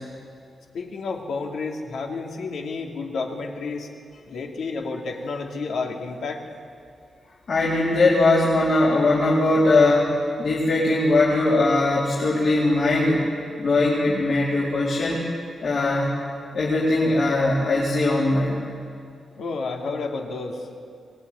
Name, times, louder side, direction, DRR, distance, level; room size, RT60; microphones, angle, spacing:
voice 1, 0.7-3.9 4.3-6.4 19.4-20.8, left 4 dB, 80° left, 2 dB, 2.8 m, -30 dB
voice 2, 7.5-13.3 13.6-15.2 15.6-16.1 16.5-18.6, left 2 dB, 50° left, -6 dB, 4.0 m, -20 dB
23.0 x 19.0 x 9.7 m, 2.4 s
wide cardioid pair, 155°, 0 cm